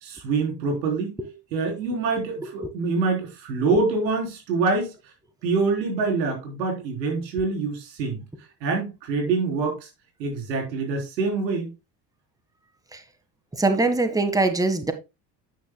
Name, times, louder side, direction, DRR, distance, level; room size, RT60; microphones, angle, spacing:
voice 1, 0.0-1.2 1.5-4.9 5.4-8.2 8.6-9.9 10.2-11.7, right 4 dB, 90° right, 3.9 m, -25 dB
voice 2, 13.5-14.9, right 2 dB, 5° right, 1.5 m, -23 dB
9.8 x 9.2 x 2.2 m
hypercardioid pair, 75°, 50 cm